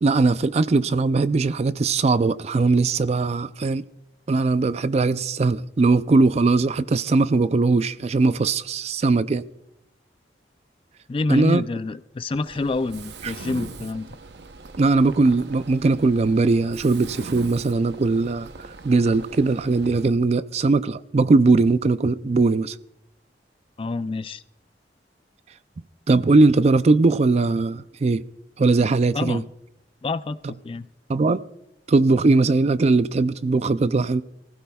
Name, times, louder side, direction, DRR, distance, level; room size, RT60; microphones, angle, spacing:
voice 1, 0.0-3.8 4.3-9.4 11.3-11.6 13.2-13.3 14.8-18.5 18.8-22.8 26.1-28.2 28.6-29.4 31.1-31.4 31.9-34.2, right 3 dB, 40° right, 0.4 m, -20 dB
voice 2, 11.1-14.1 23.8-24.4 29.1-29.4 30.0-30.9, left 3 dB, 30° left, 0.4 m, -27 dB
Mechanisms, 12.5-20.1, right 3 dB, 70° right, 0.7 m, -40 dB
23.5 x 16.0 x 2.3 m
head